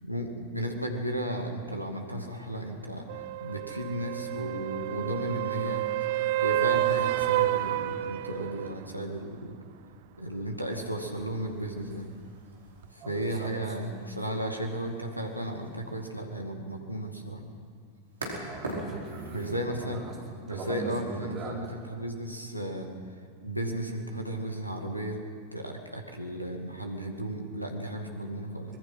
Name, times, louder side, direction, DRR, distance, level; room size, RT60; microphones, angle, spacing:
voice 1, 0.0-3.1 3.4-9.6 10.2-12.0 12.9-17.4 19.3-20.0 20.5-22.9 23.4-25.2 25.5-28.7, right 1 dB, 90° right, 2 dB, 2.2 m, -34 dB
sound 1, 3.1-8.7 12.8-12.9, right 15 dB, 50° right, 0.6 m, -29 dB
sound 2, 10.9-19.6, right 1 dB, 70° right, 4.7 m, -44 dB
voice 2, 13.0-13.7 18.4-20.1 20.5-21.7 28.7-28.8, right 3 dB, 30° right, -2 dB, 5.0 m, -40 dB
25.0 x 20.5 x 5.7 m, 2.1 s
figure-of-eight pair, 90°, 0 cm